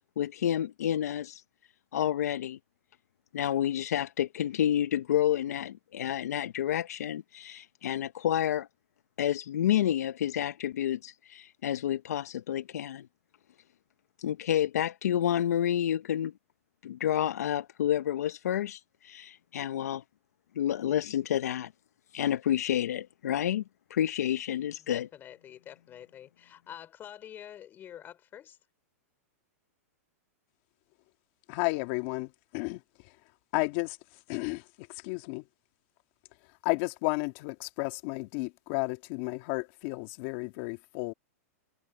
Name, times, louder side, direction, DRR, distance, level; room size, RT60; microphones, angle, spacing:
voice 1, 0.2-1.4 1.9-2.6 3.3-8.7 9.2-13.1 14.2-16.3 16.8-20.0 20.6-21.7 22.1-23.6 23.9-25.1, left 11 dB, 80° left, 0.7 m, -29 dB
voice 2, 24.8-28.6, left 10 dB, 25° left, 4.0 m, -47 dB
voice 3, 31.5-33.1 33.5-34.0 34.3-35.4 36.6-41.1, left 26 dB, 45° left, 2.0 m, -33 dB
hypercardioid pair, 140°, 8 cm